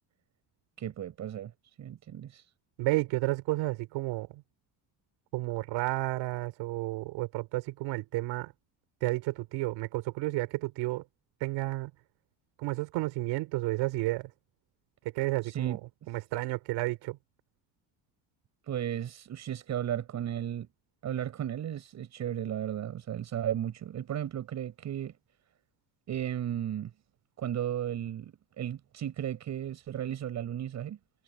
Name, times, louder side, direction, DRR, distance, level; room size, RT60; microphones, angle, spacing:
voice 1, 0.8-1.5 1.8-2.5 15.4-16.1 18.6-20.7 21.0-25.1 26.1-26.9 27.4-31.0, right 10 dB, 40° right, 7.3 m, -35 dB
voice 2, 2.8-4.4 5.3-8.5 9.0-11.0 11.4-11.9 12.6-14.3 15.1-15.8 16.1-17.2, right 19 dB, 85° right, 4.1 m, -31 dB
cardioid pair, 180°, 43 cm